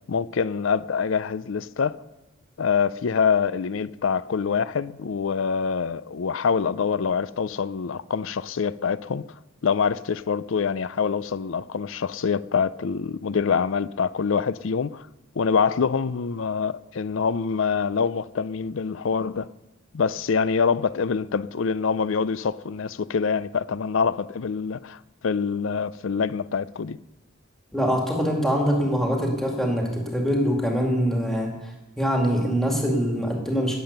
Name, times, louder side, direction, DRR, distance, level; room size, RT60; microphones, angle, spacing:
voice 1, 0.1-2.0 2.6-9.2 9.6-15.1 15.4-19.5 19.9-25.0 25.2-27.0, left 6 dB, 70° left, 0.5 m, -25 dB
voice 2, 27.7-33.8, equal, ahead, 2.1 m, -24 dB
19.0 x 7.7 x 6.7 m
head